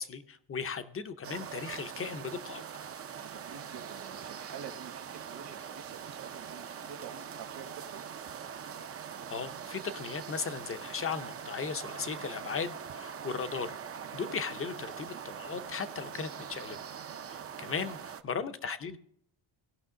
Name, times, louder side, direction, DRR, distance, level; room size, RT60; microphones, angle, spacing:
voice 1, 0.0-2.6 9.3-13.7 14.1-16.8 17.3-19.0, left 6 dB, 30° left, 11 dB, 0.6 m, -37 dB
sound 1, 1.2-18.2, right 7 dB, 30° right, 0.5 m, -43 dB
voice 2, 3.2-8.0 17.6-17.9, right 7 dB, 55° right, 9 dB, 1.1 m, -48 dB
17.5 x 5.9 x 3.7 m, 0.68 s
cardioid pair, 160°, 48 cm